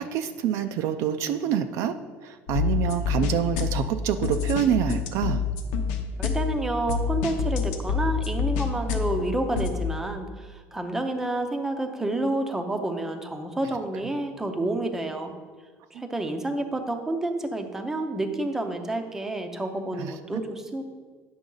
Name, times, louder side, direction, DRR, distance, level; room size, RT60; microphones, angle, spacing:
voice 1, 0.0-2.0 2.2-5.4 15.9-16.1 20.0-20.4, right 9 dB, 55° right, 9 dB, 0.4 m, -27 dB
sound 1, 2.5-9.7, left 6 dB, 80° left, 0.9 m, -28 dB
voice 2, 6.2-15.3 15.9-20.8, right 2 dB, 5° right, 5 dB, 0.6 m, -29 dB
9.5 x 6.2 x 3.9 m, 1.5 s
cardioid pair, 170°, 6 cm